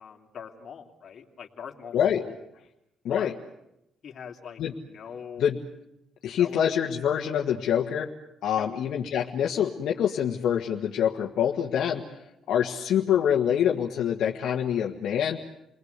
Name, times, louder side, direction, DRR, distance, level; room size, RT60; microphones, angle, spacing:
voice 1, 0.0-2.4 3.1-3.3 4.0-5.4 6.2-6.6 8.6-8.7, left 7 dB, 55° left, 2 dB, 3.0 m, -42 dB
voice 2, 6.2-8.1 8.4-12.2 12.5-15.4, left 9 dB, 75° left, 0 dB, 1.7 m, -25 dB
29.5 x 20.5 x 8.3 m, 0.86 s
cardioid pair, 90°, 0 cm